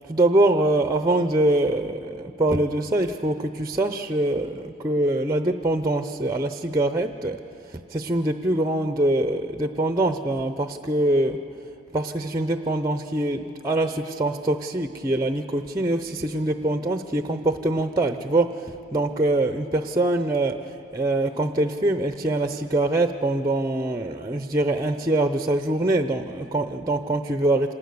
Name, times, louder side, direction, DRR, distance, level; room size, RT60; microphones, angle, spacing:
voice 1, 0.0-11.4 11.9-27.7, right 2 dB, 15° right, 8 dB, 0.5 m, -24 dB
26.0 x 19.0 x 6.8 m, 2.6 s
head